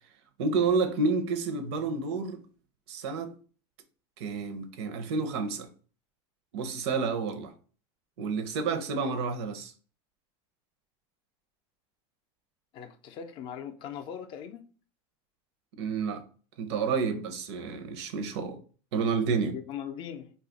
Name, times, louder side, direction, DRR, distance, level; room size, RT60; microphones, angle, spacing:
voice 1, 0.4-2.4 2.9-3.3 4.2-5.7 6.5-7.5 8.2-9.7 15.8-16.2 16.6-18.6 18.9-19.5, right 4 dB, 80° right, 0.6 m, -29 dB
voice 2, 12.7-14.7 19.5-20.3, left 8 dB, 35° left, 0.4 m, -40 dB
2.8 x 2.3 x 3.8 m
supercardioid pair, 160°, 14 cm